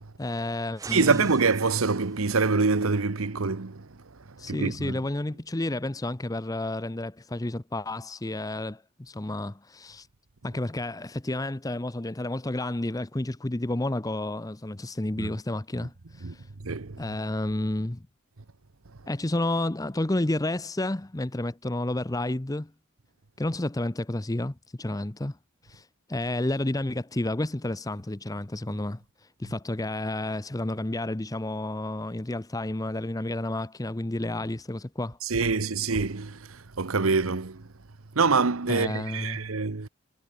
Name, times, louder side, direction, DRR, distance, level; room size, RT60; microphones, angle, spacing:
voice 1, 0.2-1.3 4.4-10.1 10.4-16.5 17.0-18.0 19.1-22.7 23.4-25.4 25.6-35.2 38.7-39.4, left 1 dB, 15° left, 0.7 m, -31 dB
sound 1, 0.8-2.4, right 3 dB, 15° right, 0.9 m, -44 dB
voice 2, 0.9-4.0 4.4-5.0 15.2-15.3 16.2-17.0 35.2-37.7 38.1-39.9, right 4 dB, 85° right, 1.1 m, -26 dB
head